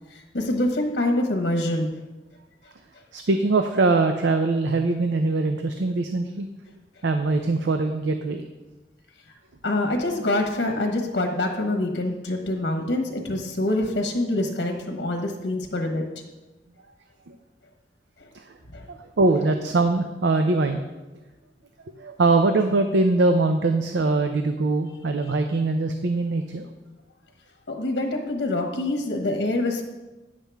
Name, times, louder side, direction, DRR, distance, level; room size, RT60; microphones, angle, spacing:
voice 1, 0.1-1.9 2.9-3.0 9.2-9.3 9.6-16.0 18.2-18.3 18.7-18.9 27.7-29.8, left 1 dB, 75° left, 3 dB, 1.2 m, -25 dB
voice 2, 3.1-6.5 7.0-8.4 17.3-17.4 18.3-18.4 18.9-20.8 21.9-26.7, right 3 dB, 75° right, 6 dB, 0.5 m, -22 dB
9.8 x 7.4 x 3.5 m, 1.1 s
head